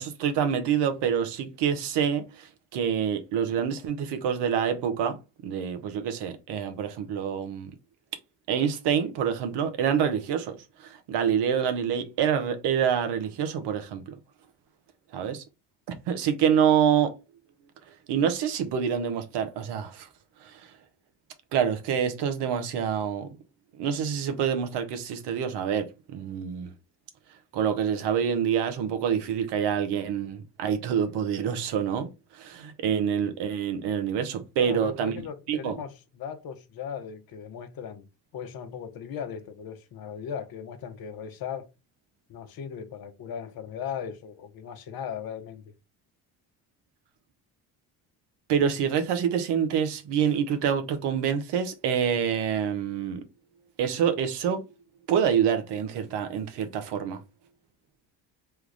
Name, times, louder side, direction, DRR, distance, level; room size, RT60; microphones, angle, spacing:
voice 1, 0.0-2.5 2.7-5.2 5.4-7.7 8.5-10.6 11.1-14.0 15.1-15.4 16.1-17.1 18.1-20.1 20.4-20.5 21.5-23.3 23.8-26.7 27.5-32.1 32.4-35.1 35.5-35.8 48.5-53.2 53.8-54.6 55.1-57.2, right 8 dB, 70° right, 0.9 m, -26 dB
voice 2, 34.6-38.1 38.3-41.7 42.3-45.7, left 8 dB, 55° left, 0.8 m, -38 dB
3.4 x 2.4 x 3.2 m
supercardioid pair, 65°, 42 cm